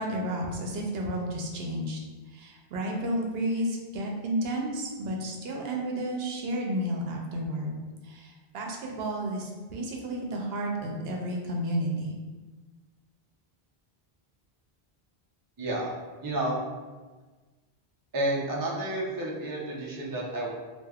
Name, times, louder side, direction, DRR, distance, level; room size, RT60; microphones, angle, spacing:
voice 1, 0.0-2.0 2.3-7.8 8.0-12.2, right 1 dB, 75° right, 0 dB, 0.8 m, -32 dB
voice 2, 15.6-15.9 16.2-16.6 18.1-20.5, right 1 dB, 35° right, -3 dB, 0.3 m, -30 dB
3.3 x 2.7 x 2.3 m, 1.3 s
omnidirectional pair, 1.1 m